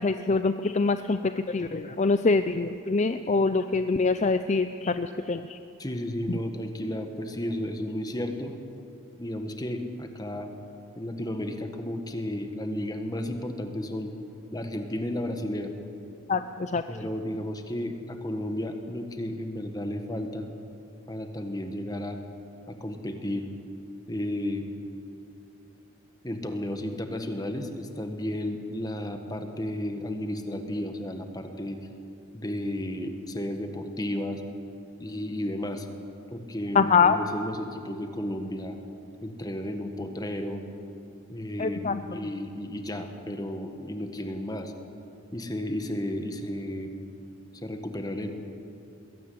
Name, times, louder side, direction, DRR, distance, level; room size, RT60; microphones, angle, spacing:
voice 1, 0.0-5.6 6.3-6.4 16.3-16.8 36.7-37.2 41.6-42.2, left 4 dB, 35° left, 10 dB, 0.5 m, -25 dB
voice 2, 5.8-8.5 9.2-10.5 11.0-14.1 14.5-15.7 16.9-20.5 21.1-22.2 22.7-23.5 24.1-24.7 26.2-31.8 32.3-34.4 35.0-35.9 36.3-38.8 39.2-40.7 41.3-44.7 45.3-46.9 47.6-48.3, left 1 dB, 20° left, 6 dB, 1.5 m, -33 dB
21.5 x 16.5 x 8.6 m, 2.7 s
head